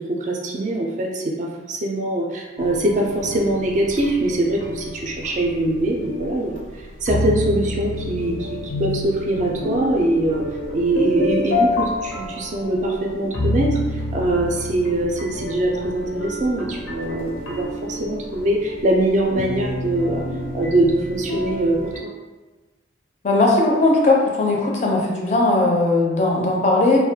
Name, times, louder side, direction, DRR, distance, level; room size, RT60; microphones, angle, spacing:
voice 1, 0.0-10.4 10.7-20.2 20.5-22.1, right 1 dB, 40° right, -1 dB, 0.3 m, -23 dB
sound 1, 2.6-22.0, left 1 dB, 85° left, 0.5 m, -29 dB
voice 2, 23.2-27.0, left 2 dB, 40° left, -2 dB, 0.4 m, -18 dB
2.3 x 2.1 x 2.7 m, 1.2 s
head